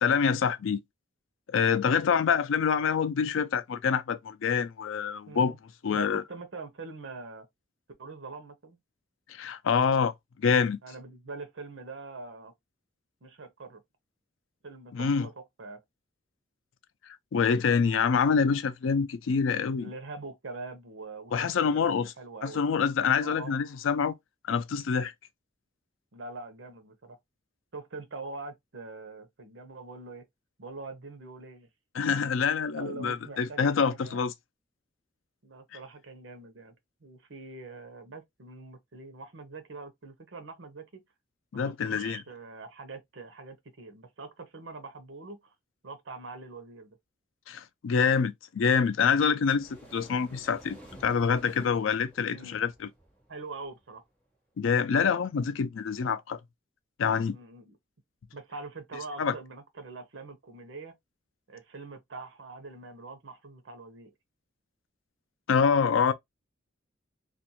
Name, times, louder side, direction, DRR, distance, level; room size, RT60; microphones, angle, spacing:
voice 1, 0.0-0.8 1.5-5.5 5.8-6.2 9.3-10.1 10.4-10.8 14.9-15.3 17.3-19.9 21.3-22.1 22.4-24.1 24.5-25.1 31.9-34.3 41.5-42.2 47.5-52.9 54.6-56.4 57.0-57.4 59.2-59.3 65.5-66.1, left 6 dB, 85° left, 0.4 m, -26 dB
voice 2, 5.3-5.6 5.9-7.5 8.0-8.8 10.8-12.5 13.2-13.8 14.6-15.8 19.8-22.6 23.2-23.5 26.1-27.2 27.7-30.3 30.6-31.7 32.8-34.2 35.4-36.7 37.0-41.0 41.5-45.5 45.8-47.0 52.2-52.6 53.3-54.0 57.3-57.8 58.3-60.9 61.5-64.1, right 3 dB, 70° right, 0.7 m, -43 dB
sound 1, 49.6-54.0, right 1 dB, 10° left, 0.9 m, -52 dB
2.5 x 2.2 x 2.8 m
head